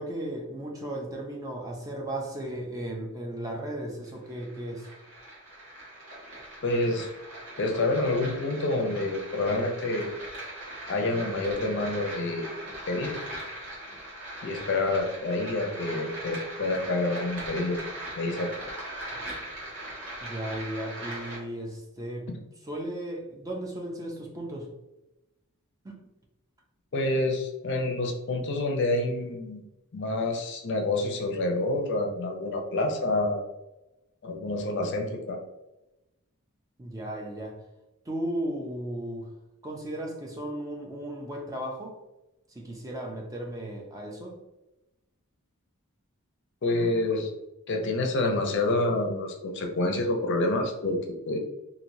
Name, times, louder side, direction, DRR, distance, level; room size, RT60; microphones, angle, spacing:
voice 1, 0.0-4.9 20.2-22.3 22.6-24.7 25.8-26.0 36.8-37.6 38.1-39.3 39.6-42.0 42.5-44.4, right 1 dB, 15° right, 0 dB, 0.4 m, -35 dB
sound 1, 4.0-21.4, right 1 dB, 75° right, 1.3 m, -40 dB
voice 2, 6.6-7.1 7.6-10.1 10.9-12.5 12.9-13.4 14.4-17.8 18.2-18.5 26.9-29.6 29.9-33.4 34.2-35.4 46.6-47.3 47.7-51.0 51.3-51.4, left 2 dB, 55° left, 3 dB, 0.5 m, -28 dB
3.1 x 2.5 x 2.6 m, 0.97 s
head